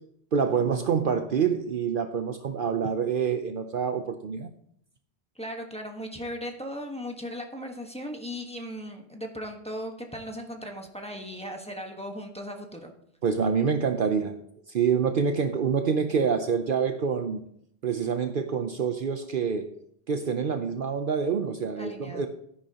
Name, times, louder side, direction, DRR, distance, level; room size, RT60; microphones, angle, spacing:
voice 1, 0.3-4.5 13.2-14.4 14.7-17.4 17.8-19.7 20.1-22.3, right 6 dB, 55° right, 8 dB, 0.8 m, -26 dB
voice 2, 5.3-12.9 21.7-22.3, equal, 5° left, 2 dB, 1.2 m, -37 dB
13.0 x 10.0 x 2.9 m, 0.69 s
omnidirectional pair, 1.1 m